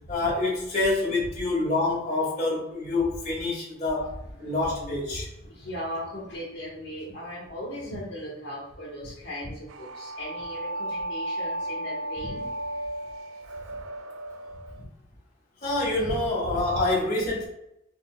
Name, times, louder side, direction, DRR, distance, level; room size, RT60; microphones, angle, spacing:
voice 1, 0.1-5.3 15.6-17.5, left 2 dB, 35° left, -6 dB, 1.4 m, -26 dB
voice 2, 4.3-5.0 5.3-12.5, equal, 60° left, -5 dB, 1.3 m, -38 dB
sound 1, 9.7-14.8, right 1 dB, 80° right, 0.3 m, -34 dB
5.3 x 2.7 x 2.3 m, 0.85 s
head